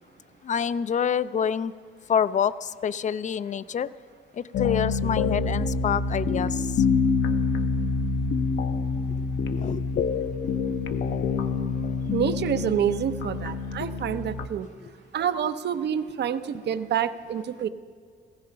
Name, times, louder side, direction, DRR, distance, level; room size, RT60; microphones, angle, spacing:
voice 1, 0.4-1.7 2.1-3.9 4.3-6.8 9.5-10.0 14.8-14.9, left 8 dB, 40° left, 16 dB, 0.5 m, -27 dB
sound 1, 4.5-14.5, left 4 dB, 70° left, 0.9 m, -26 dB
voice 2, 12.1-14.7 15.1-17.7, right 9 dB, 60° right, 12 dB, 0.7 m, -27 dB
15.5 x 14.5 x 5.7 m, 2.1 s
cardioid pair, 90°, 20 cm